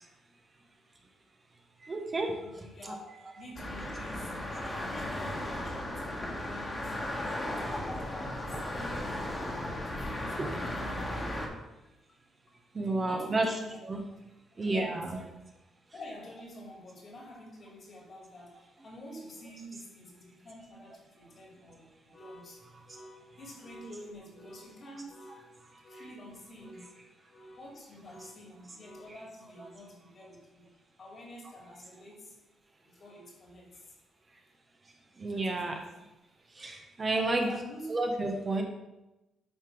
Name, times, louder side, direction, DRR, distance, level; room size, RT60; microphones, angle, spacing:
voice 1, 1.8-2.3 2.8-2.9 10.4-10.5 12.7-13.5 13.8-14.0 14.6-15.2 35.2-35.8 36.6-37.5 37.9-38.6, right 2 dB, 30° right, 2 dB, 1.2 m, -30 dB
voice 2, 2.4-3.1 3.3-4.3 4.8-8.6 9.6-11.3 13.0-13.8 14.5-15.4 15.9-32.4 32.8-33.9 35.3-35.9 37.1-38.1, left 1 dB, 45° left, 0 dB, 2.5 m, -48 dB
sound 1, 3.6-11.5, left 1 dB, 25° left, 1.7 m, -36 dB
9.9 x 3.3 x 4.6 m, 0.98 s
cardioid pair, 90°, 0 cm